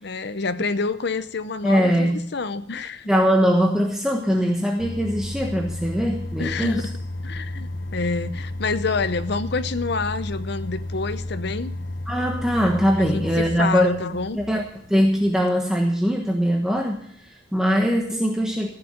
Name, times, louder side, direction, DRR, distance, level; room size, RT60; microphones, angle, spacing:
voice 1, 0.0-3.1 6.4-6.9 7.2-11.7 13.0-14.4, left 4 dB, 60° left, 12 dB, 0.8 m, -27 dB
voice 2, 1.6-2.2 3.1-6.9 12.1-13.9 14.3-14.6 14.9-18.7, equal, 5° right, 0 dB, 1.2 m, -21 dB
sound 1, 4.8-15.4, left 1 dB, 80° left, 1.0 m, -32 dB
14.5 x 7.0 x 8.7 m, 0.64 s
head